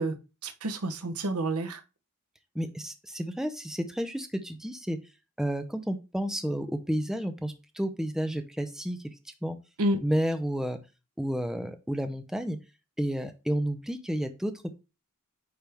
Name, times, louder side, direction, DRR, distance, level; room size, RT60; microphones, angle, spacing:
voice 1, 0.0-1.8 9.8-10.0, right 1 dB, 80° right, 0.8 m, -29 dB
voice 2, 2.5-5.0 5.4-9.0 9.4-9.6 10.0-10.8 11.2-12.6 13.0-14.5, equal, ahead, 0.5 m, -31 dB
9.0 x 3.4 x 3.4 m
head